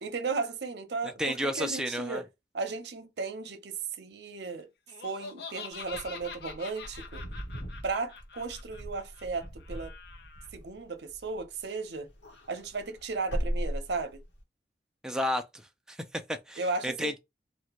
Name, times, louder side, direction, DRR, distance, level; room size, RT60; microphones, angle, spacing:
voice 1, 0.0-2.3 2.5-4.7 5.0-7.2 7.8-9.9 10.5-12.1 12.5-14.2 16.6-17.1, right 4 dB, 75° right, 0.6 m, -35 dB
voice 2, 1.2-2.2 15.0-15.6 15.9-17.2, equal, 5° right, 0.3 m, -32 dB
Laughter, 4.9-10.5, left 5 dB, 70° left, 0.5 m, -45 dB
Wind / Car, 5.8-11.6 12.0-14.4, equal, 90° left, 1.0 m, -38 dB
2.6 x 2.1 x 2.9 m
head